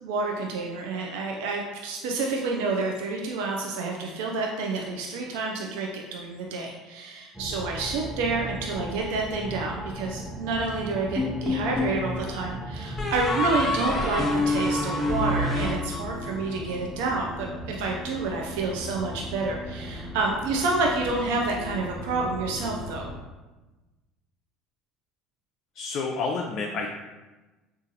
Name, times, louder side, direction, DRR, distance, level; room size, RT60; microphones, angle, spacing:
voice 1, 0.0-23.1, right 3 dB, 80° right, 0 dB, 0.4 m, -29 dB
sound 1, 7.3-23.2, equal, ahead, 0.5 m, -37 dB
sound 2, 11.2-12.0 13.0-16.5, left 2 dB, 20° left, 0.8 m, -27 dB
voice 2, 25.7-26.9, left 4 dB, 55° left, 1 dB, 0.3 m, -29 dB
3.8 x 2.4 x 2.7 m, 1.2 s
supercardioid pair, 90°, 0 cm